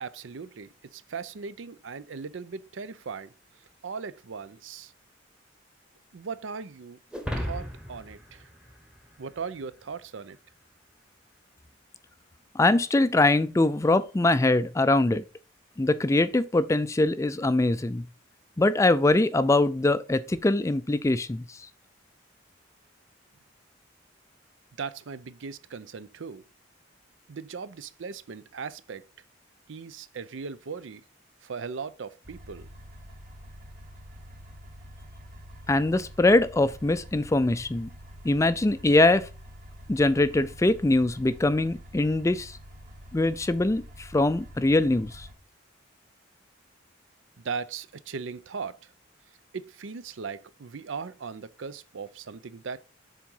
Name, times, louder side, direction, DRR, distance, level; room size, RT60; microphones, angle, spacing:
voice 1, 0.0-3.3 3.8-4.9 6.1-7.0 7.4-8.5 9.2-10.4 24.8-26.4 27.3-29.1 29.7-31.0 31.4-32.7 47.4-48.9 49.5-52.8, right 5 dB, 75° right, 0.5 m, -38 dB
sound 1, 7.1-9.6, equal, 5° right, 0.9 m, -36 dB
voice 2, 12.6-15.2 15.8-18.0 18.6-21.4 35.7-37.9 38.2-39.3 39.9-42.6 43.1-45.3, left 2 dB, 15° left, 0.3 m, -23 dB
sound 2, 32.2-45.3, equal, 40° right, 1.6 m, -46 dB
7.4 x 3.7 x 5.4 m
head